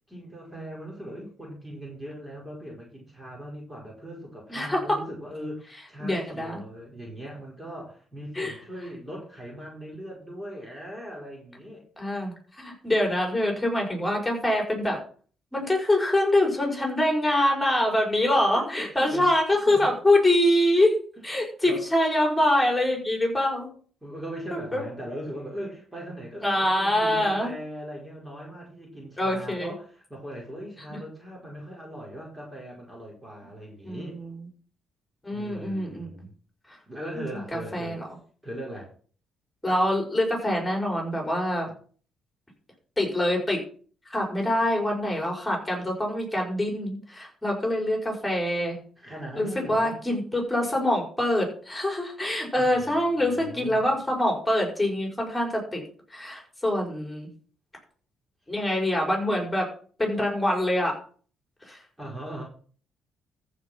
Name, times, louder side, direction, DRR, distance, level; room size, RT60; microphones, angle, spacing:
voice 1, 0.1-11.8 18.5-19.3 19.7-19.9 21.2-21.3 21.6-21.8 22.3-22.4 24.0-34.2 35.3-36.3 36.9-38.0 38.4-38.9 49.0-50.0 52.5-53.8 62.0-62.4, equal, 15° right, -2 dB, 4.6 m, -39 dB
voice 2, 4.5-5.0 6.0-6.6 8.3-8.5 12.0-15.0 15.5-21.0 21.2-23.7 24.7-24.8 26.4-27.5 29.2-29.7 30.9-31.0 33.8-34.3 35.2-36.1 36.7-36.8 37.1-37.2 37.5-38.0 39.6-41.7 43.0-43.6 44.1-48.8 49.4-55.8 56.1-57.3 58.5-59.7 60.0-61.0 61.7-61.8, left 1 dB, 10° left, 0 dB, 5.6 m, -25 dB
14.0 x 5.4 x 6.2 m, 0.43 s
cardioid pair, 85°, 0 cm